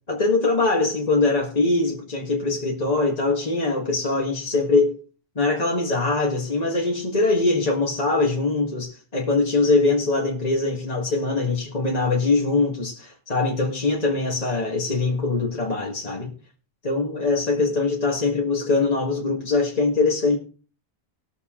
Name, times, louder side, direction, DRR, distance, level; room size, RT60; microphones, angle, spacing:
voice 1, 0.1-5.0 5.4-16.3 16.8-20.4, left 3 dB, 40° left, 1.9 m, -22 dB
20.0 x 6.9 x 3.7 m
omnidirectional pair, 1.1 m